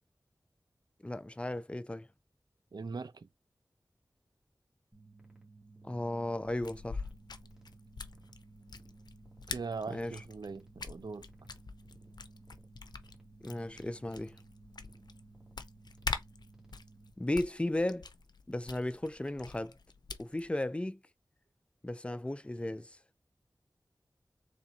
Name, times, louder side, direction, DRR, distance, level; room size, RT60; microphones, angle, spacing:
voice 1, 1.0-2.1 5.8-7.0 9.9-10.1 13.4-14.3 17.2-18.1 18.5-19.7 20.2-21.0 21.8-23.0, left 1 dB, 15° left, 0.5 m, -35 dB
voice 2, 2.7-3.3 9.5-11.3, right 4 dB, 75° right, 0.5 m, -40 dB
sound 1, 4.9-17.1, right 3 dB, 10° right, 1.8 m, -57 dB
sound 2, 6.5-20.5, left 4 dB, 70° left, 0.5 m, -45 dB
3.9 x 3.4 x 2.7 m
wide cardioid pair, 70°, 7 cm